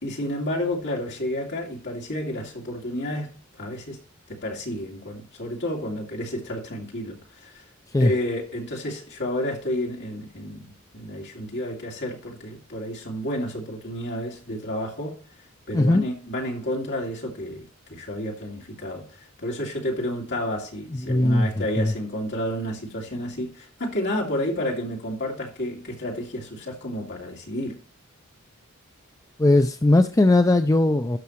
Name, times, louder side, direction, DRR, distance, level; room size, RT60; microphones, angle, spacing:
voice 1, 0.0-4.0 4.3-7.6 8.0-15.2 15.7-27.8, left 1 dB, 55° left, 2.7 m, -31 dB
voice 2, 20.9-21.5 21.8-21.9 29.4-31.2, left 2 dB, 15° left, 0.4 m, -19 dB
12.5 x 5.9 x 3.1 m
head